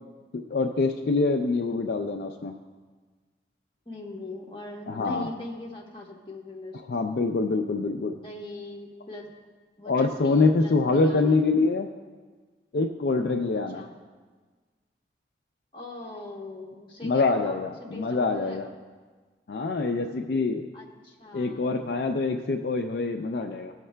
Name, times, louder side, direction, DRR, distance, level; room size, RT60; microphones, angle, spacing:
voice 1, 0.5-2.6 4.9-5.3 6.9-8.2 9.9-11.9 12.7-13.9 17.0-18.7 19.5-20.7 21.3-23.7, left 3 dB, 60° left, 4 dB, 0.4 m, -25 dB
voice 2, 3.9-7.0 8.2-9.3 9.8-11.6 13.5-13.9 15.7-18.6 20.7-21.9, left 2 dB, 25° left, -2 dB, 1.0 m, -41 dB
16.0 x 6.4 x 2.2 m, 1.4 s
head